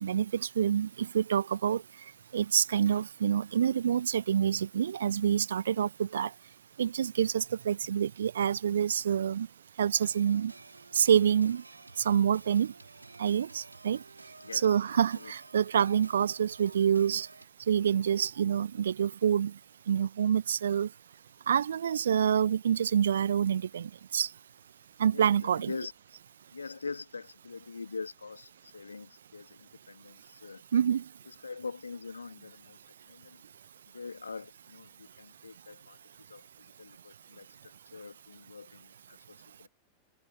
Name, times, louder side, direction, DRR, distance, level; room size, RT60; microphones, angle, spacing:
voice 1, 0.0-1.8 2.3-6.3 6.8-9.5 9.8-10.5 10.9-11.6 12.0-12.7 13.2-14.0 14.5-17.3 17.7-19.5 19.9-20.9 21.5-24.3 25.0-25.7 30.7-31.0, right 8 dB, 65° right, 0.9 m, -27 dB
sound 1, 9.9-17.5, right 2 dB, 85° right, 3.7 m, -53 dB
voice 2, 14.4-14.7 15.1-15.3 25.1-25.9 26.5-30.6 31.3-32.8 33.1-33.4 33.9-36.0 36.3-39.7, left 4 dB, 75° left, 2.8 m, -44 dB
figure-of-eight pair, 90°, 0 cm